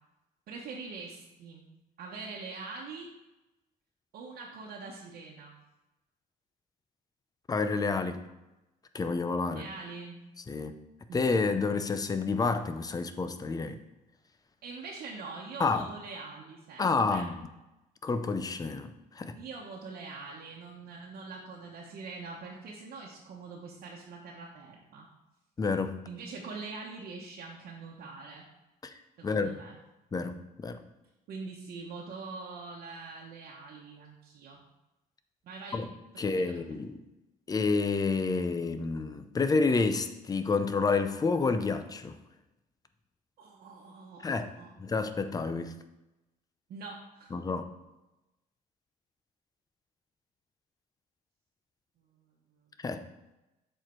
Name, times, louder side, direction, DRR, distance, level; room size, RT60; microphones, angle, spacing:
voice 1, 0.5-1.7 2.0-3.1 4.1-5.5 9.5-10.2 11.1-11.3 14.6-17.3 19.4-25.1 26.1-28.5 29.2-29.8 31.3-34.6 35.4-35.8 36.2-36.5 43.4-44.7 46.7-47.3, right 4 dB, 60° right, -4 dB, 1.2 m, -43 dB
voice 2, 7.5-8.2 8.9-9.7 10.5-10.7 11.1-13.8 15.6-15.9 16.8-17.4 18.0-19.4 25.6-26.0 28.8-28.9 29.2-29.5 30.1-30.8 35.7-35.9 36.2-36.9 37.5-42.2 44.2-44.5 44.8-45.7 47.3-47.6 52.8-53.0, left 4 dB, 20° left, 10 dB, 0.6 m, -29 dB
7.5 x 4.5 x 4.5 m, 0.99 s
cardioid pair, 110°, 17 cm